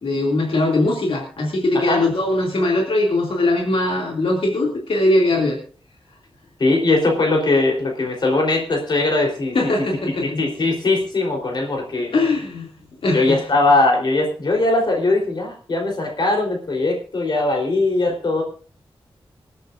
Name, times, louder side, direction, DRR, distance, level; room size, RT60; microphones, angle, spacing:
voice 1, 0.0-5.6 9.5-10.4 12.1-12.7 13.0-13.5, left 2 dB, 75° left, -1 dB, 2.6 m, -20 dB
voice 2, 6.6-9.6 10.4-12.1 13.1-18.4, left 2 dB, 50° left, 0 dB, 3.9 m, -20 dB
26.5 x 9.1 x 2.6 m, 0.40 s
wide cardioid pair, 165°, 9 cm